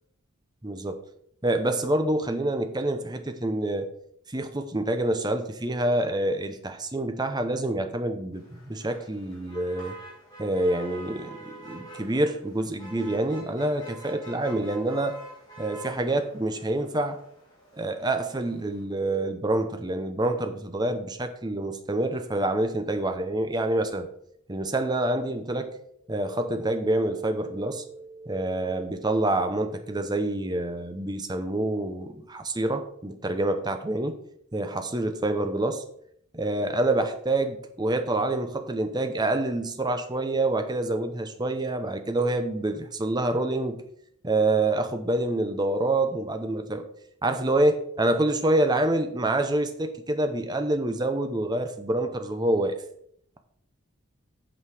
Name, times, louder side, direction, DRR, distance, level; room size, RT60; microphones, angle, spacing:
voice 1, 1.4-3.9 4.3-9.9 10.4-15.2 15.6-17.2 17.7-24.1 24.5-25.7 26.1-34.2 34.5-35.8 36.3-43.8 44.2-46.8 47.2-52.7, right 2 dB, 20° right, 7 dB, 0.7 m, -27 dB
Motor vehicle (road), 8.3-18.8, right 1 dB, 20° left, 3.5 m, -47 dB
8.3 x 5.5 x 4.8 m, 0.69 s
head